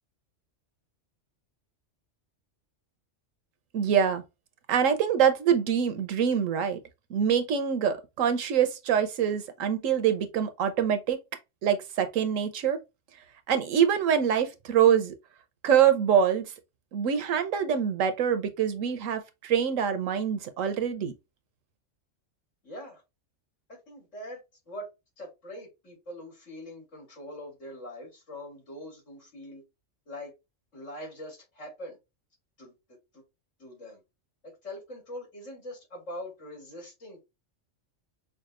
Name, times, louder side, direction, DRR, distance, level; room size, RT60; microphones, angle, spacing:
voice 1, 3.7-4.2 4.7-6.8 7.1-11.2 11.6-12.8 13.5-15.1 15.6-16.5 16.9-21.1, right 8 dB, 80° right, 1.1 m, -25 dB
voice 2, 22.6-23.0 23.7-24.4 24.7-24.9 25.2-29.6 30.1-30.3 30.7-32.0 32.6-32.7 33.1-33.2 33.6-34.0 34.4-37.2, left 1 dB, 70° left, 3.2 m, -42 dB
5.8 x 2.4 x 2.4 m
omnidirectional pair, 1.3 m